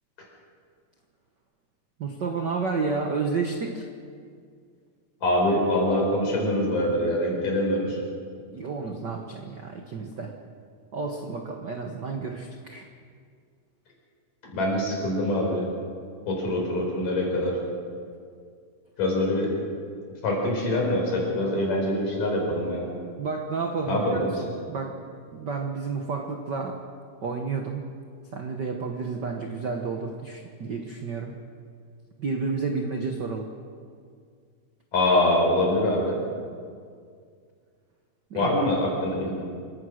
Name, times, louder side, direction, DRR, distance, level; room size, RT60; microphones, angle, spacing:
voice 1, 2.0-3.9 8.5-10.4 10.9-12.9 23.2-24.9 25.3-26.8 27.2-27.9 28.3-31.3 32.2-33.5 38.3-38.5, right 4 dB, 65° right, 3 dB, 1.0 m, -31 dB
voice 2, 5.2-8.0 14.5-15.7 16.3-17.6 19.0-19.5 20.2-22.9 23.9-24.4 34.9-36.2 38.3-39.3, left 1 dB, 80° left, -1 dB, 6.3 m, -24 dB
27.0 x 15.0 x 6.4 m, 2.2 s
omnidirectional pair, 3.7 m